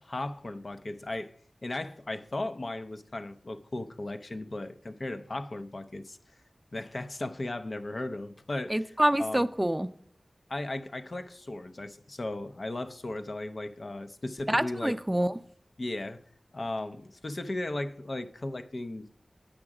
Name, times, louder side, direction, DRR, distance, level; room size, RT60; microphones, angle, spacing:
voice 1, 0.0-1.3 1.6-6.2 6.7-8.8 9.2-9.4 10.5-15.0 15.8-16.2 16.5-19.1, left 2 dB, 65° left, 0.5 m, -36 dB
voice 2, 8.7-9.9 14.5-15.3, right 1 dB, 15° right, 0.5 m, -26 dB
8.7 x 6.1 x 4.8 m
cardioid pair, 40°, 0 cm